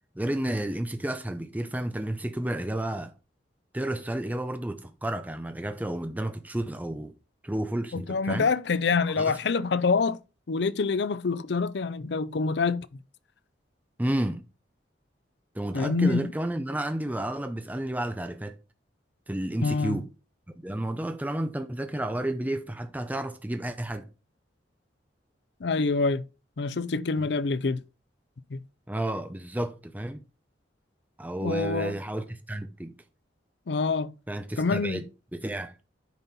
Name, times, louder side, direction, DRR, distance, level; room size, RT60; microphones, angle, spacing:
voice 1, 0.2-3.1 3.7-7.1 7.4-8.5 9.2-9.3 14.0-14.4 15.5-18.6 19.3-20.1 20.5-24.1 27.2-27.3 28.9-30.2 31.2-32.9 34.3-35.0 35.3-35.8, right 1 dB, 10° right, 0.6 m, -31 dB
voice 2, 7.9-10.2 10.5-13.0 15.7-16.3 19.6-20.0 25.6-26.2 26.6-27.8 28.5-28.6 31.4-31.9 33.7-34.1 34.6-35.0, left 4 dB, 65° left, 0.5 m, -26 dB
9.3 x 5.4 x 4.2 m
head